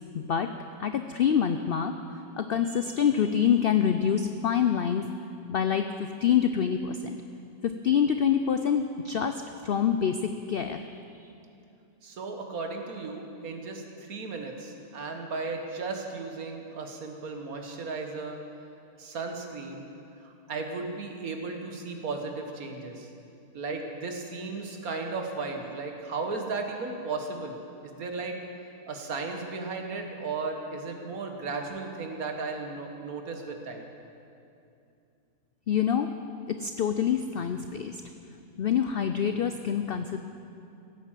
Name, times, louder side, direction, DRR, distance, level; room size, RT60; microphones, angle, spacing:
voice 1, 0.1-0.5 0.8-2.0 2.4-5.1 5.5-7.2 7.6-10.9 11.2-11.3 35.7-36.1 36.5-38.0 38.6-40.2, left 8 dB, 75° left, 8 dB, 0.5 m, -26 dB
voice 2, 12.0-18.4 19.0-19.8 20.2-23.1 23.5-28.4 28.9-33.9, right 3 dB, 70° right, 3 dB, 1.8 m, -35 dB
16.0 x 9.4 x 7.4 m, 2.6 s
omnidirectional pair, 1.6 m